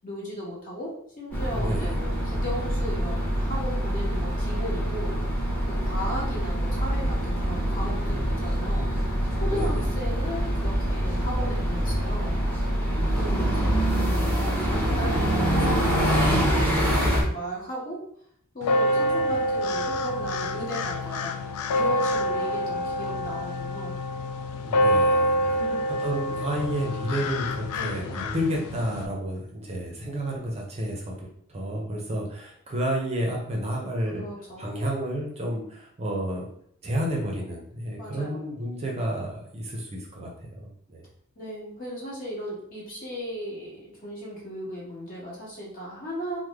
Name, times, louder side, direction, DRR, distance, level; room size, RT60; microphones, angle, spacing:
voice 1, 0.0-5.1 5.7-8.9 9.3-12.3 13.2-13.8 14.1-18.0 18.5-21.3 21.7-23.9 25.4-25.8 27.7-28.2 34.1-34.7 38.0-38.4 41.4-46.4, equal, 40° left, -5 dB, 1.2 m, -36 dB
sound 1, 1.3-17.2, equal, 10° left, 0.8 m, -25 dB
voice 2, 1.5-2.0 9.4-9.8 13.2-13.5 24.6-25.5 26.0-34.2 34.6-36.5 36.8-40.3 40.6-41.0, right 1 dB, 30° right, -1 dB, 0.6 m, -31 dB
sound 2, 18.6-29.1, left 1 dB, 85° left, 0.3 m, -27 dB
3.2 x 2.0 x 3.4 m, 0.66 s
head